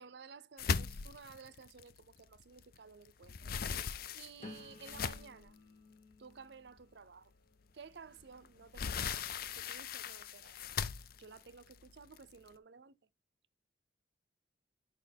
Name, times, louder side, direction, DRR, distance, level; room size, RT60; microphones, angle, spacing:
voice 1, 0.0-5.6 6.2-7.3 7.7-9.2 9.6-10.5 11.2-13.0, right 5 dB, 65° right, 0.6 m, -55 dB
sound 1, 0.6-2.8 3.1-5.5 6.1-6.2 6.7-6.8 8.2-12.5, left 6 dB, 50° left, 0.5 m, -39 dB
sound 2, 4.4-10.3 10.8-11.2, left 2 dB, 35° left, 1.8 m, -58 dB
6.5 x 5.1 x 3.4 m
head